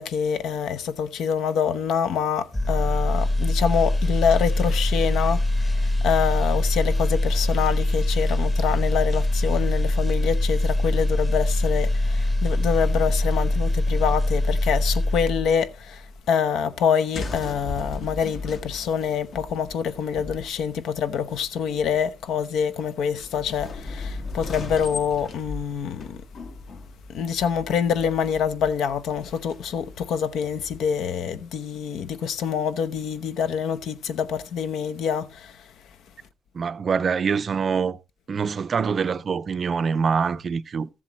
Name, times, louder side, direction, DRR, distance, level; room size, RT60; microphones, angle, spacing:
voice 1, 0.0-26.2 27.1-35.7, left 7 dB, 80° left, 0.8 m, -26 dB
sound 1, 2.5-15.7 16.0-16.2, left 1 dB, 15° left, 1.1 m, -23 dB
sound 2, 17.1-30.9, left 3 dB, 50° left, 1.1 m, -38 dB
voice 2, 36.5-38.0 38.3-40.9, right 6 dB, 40° right, 0.4 m, -24 dB
14.5 x 7.5 x 3.0 m
cardioid pair, 145°, 0 cm